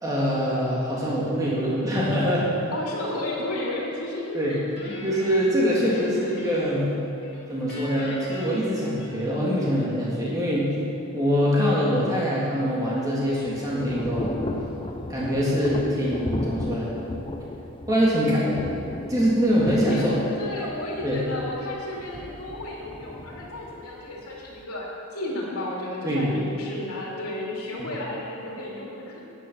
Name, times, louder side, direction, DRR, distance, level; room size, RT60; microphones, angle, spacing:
voice 1, 0.0-2.5 4.3-4.6 5.0-6.9 7.5-10.7 11.1-14.4 15.1-16.9 17.9-18.6 19.1-20.2 21.0-21.2 26.0-26.3, equal, 15° right, -6 dB, 1.9 m, -24 dB
voice 2, 2.7-4.6 19.7-29.2, left 1 dB, 85° left, -4 dB, 3.1 m, -33 dB
Guitar, 4.8-6.9 7.2-9.5, left 1 dB, 50° left, 2.3 m, -40 dB
Thunder / Rain, 12.7-24.6, left 1 dB, 25° left, 0.5 m, -36 dB
10.0 x 9.2 x 5.8 m, 2.7 s
head